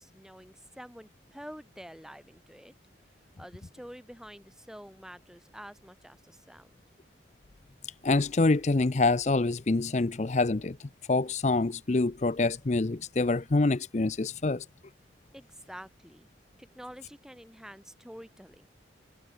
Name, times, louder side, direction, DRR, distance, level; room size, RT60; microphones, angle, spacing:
voice 1, 0.0-2.7 3.4-6.8 15.3-16.3 16.6-18.7, equal, 5° right, 5.4 m, -48 dB
voice 2, 8.0-10.8 11.1-14.7, left 3 dB, 40° left, 0.6 m, -26 dB
head